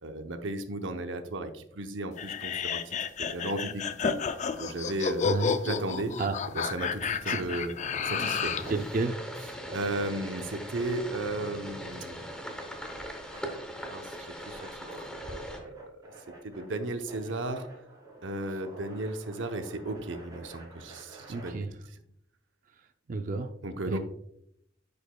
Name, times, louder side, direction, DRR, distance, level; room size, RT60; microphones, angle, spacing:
voice 1, 0.0-4.3 4.6-5.3 5.6-6.1 6.5-7.7 8.0-8.8 9.7-12.3 13.9-16.0 16.4-17.7 18.2-21.6 23.6-24.0, right 2 dB, 85° right, 7 dB, 0.7 m, -35 dB
sound 1, 2.2-8.7, left 6 dB, 40° left, 0.4 m, -31 dB
sound 2, 4.6-21.5, right 1 dB, 20° right, 2.7 m, -49 dB
sound 3, 8.1-15.6, equal, 5° left, 0.8 m, -41 dB
voice 2, 8.7-9.2 21.3-21.7 23.1-23.5 23.9-24.0, right 3 dB, 45° right, 6 dB, 0.4 m, -30 dB
10.0 x 5.1 x 2.2 m, 0.75 s
head